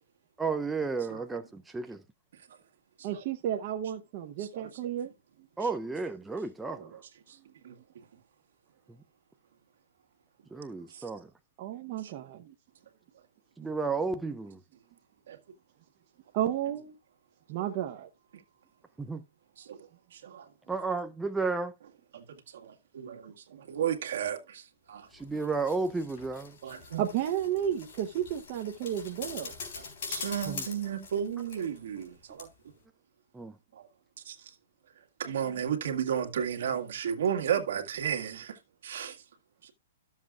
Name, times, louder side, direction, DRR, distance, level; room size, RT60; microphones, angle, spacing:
voice 1, 0.4-2.0 5.6-6.9 10.5-11.3 13.6-14.6 19.0-19.2 20.7-21.7 25.1-26.6 30.5-30.6 33.3-33.6, right 4 dB, 5° right, 0.4 m, -32 dB
voice 2, 3.0-5.1 11.6-12.5 16.3-16.9 17.5-18.1 27.0-29.5, right 10 dB, 35° right, 0.8 m, -32 dB
voice 3, 4.4-4.7 6.8-7.0 7.3-7.4 7.6-7.8 10.9-11.0 12.0-12.1 15.3-15.4 19.6-20.5 22.1-25.1 26.6-27.0 29.8-32.7 33.7-33.9 34.2-34.5 35.2-39.2 39.6-39.7, right 8 dB, 65° right, 1.8 m, -34 dB
sound 1, 25.1-32.1 32.4-32.5, left 5 dB, 50° left, 3.8 m, -43 dB
13.0 x 7.3 x 2.4 m
hypercardioid pair, 160°, 0 cm